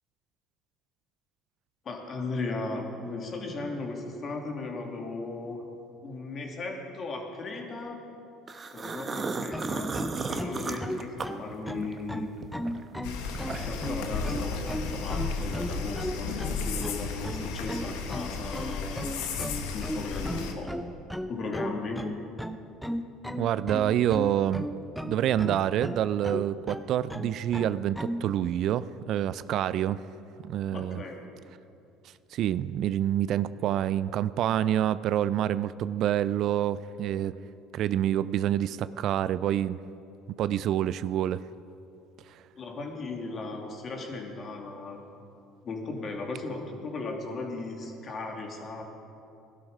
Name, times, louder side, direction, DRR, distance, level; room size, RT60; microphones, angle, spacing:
voice 1, 1.8-5.6 6.0-8.0 8.7-10.0 10.3-12.3 13.5-19.1 19.7-20.7 21.3-22.0 30.7-31.2 42.6-45.0 45.6-48.8, left 3 dB, 45° left, 2 dB, 2.7 m, -36 dB
sound 1, 8.5-12.0 12.4-13.9, right 4 dB, 35° right, 1.2 m, -34 dB
sound 2, 9.5-28.3, equal, ahead, 0.9 m, -35 dB
sound 3, 13.0-20.5, left 4 dB, 75° left, 1.4 m, -34 dB
voice 2, 23.4-24.7 25.0-30.0 30.4-31.0 32.3-37.3 37.7-39.8 40.4-41.5 42.3-42.4, right 11 dB, 60° right, 16 dB, 0.4 m, -27 dB
17.5 x 12.0 x 5.4 m, 2.7 s
hypercardioid pair, 70°, 0 cm